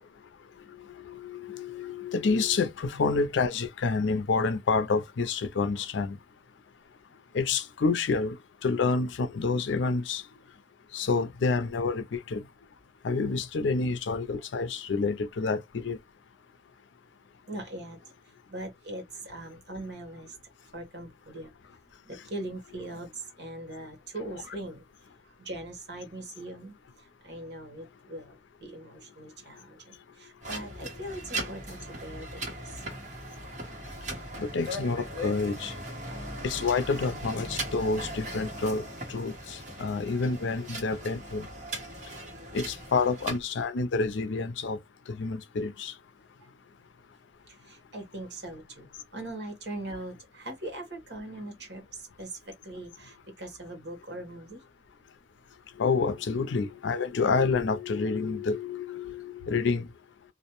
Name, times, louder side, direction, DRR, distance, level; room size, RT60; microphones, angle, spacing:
voice 1, 1.1-6.2 7.3-8.4 8.6-10.2 10.9-12.4 13.0-16.0 34.4-35.7 36.4-38.8 39.1-41.5 42.5-44.8 45.1-45.9 55.8-59.9, left 4 dB, 85° left, 0.5 m, -28 dB
voice 2, 17.5-18.1 18.5-20.4 20.7-21.5 22.0-24.8 25.4-26.7 27.2-32.8 42.3-42.4 47.7-48.9 49.1-54.6, right 1 dB, 70° right, 1.1 m, -41 dB
sound 1, 30.4-43.4, right 1 dB, 40° right, 1.2 m, -39 dB
2.5 x 2.1 x 2.9 m
head